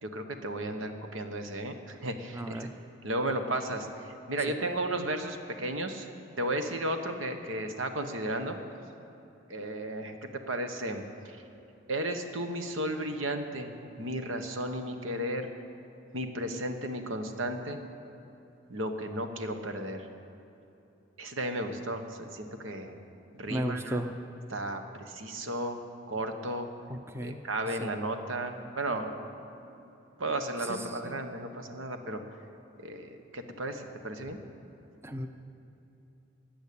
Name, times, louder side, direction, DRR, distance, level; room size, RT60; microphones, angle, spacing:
voice 1, 0.0-2.7 3.0-6.1 6.4-8.6 9.5-11.4 11.9-13.7 14.0-15.5 16.1-17.8 18.7-20.1 21.2-23.0 23.3-24.0 24.5-25.8 26.1-26.7 27.2-29.1 29.7-29.9 30.2-32.2 32.8-34.4, right 1 dB, 85° right, 6 dB, 1.3 m, -34 dB
voice 2, 2.3-2.7 23.5-24.1 26.9-27.4 27.8-27.9 30.7-30.8 31.0-31.1 35.0-35.3, right 1 dB, 10° right, 7 dB, 0.6 m, -34 dB
15.5 x 10.0 x 8.7 m, 2.9 s
head